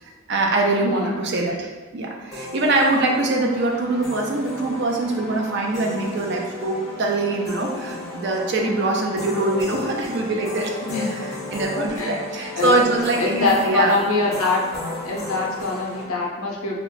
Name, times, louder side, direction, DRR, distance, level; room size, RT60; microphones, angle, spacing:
voice 1, 0.0-10.8 11.1-14.0, right 2 dB, 50° right, 1 dB, 0.4 m, -23 dB
sound 1, 2.3-16.0, left 2 dB, ahead, 1.1 m, -34 dB
voice 2, 10.8-11.2 11.8-12.2 12.5-12.9 13.2-14.6 15.0-16.8, left 3 dB, 70° left, -2 dB, 0.5 m, -24 dB
2.8 x 2.2 x 4.0 m, 1.4 s
head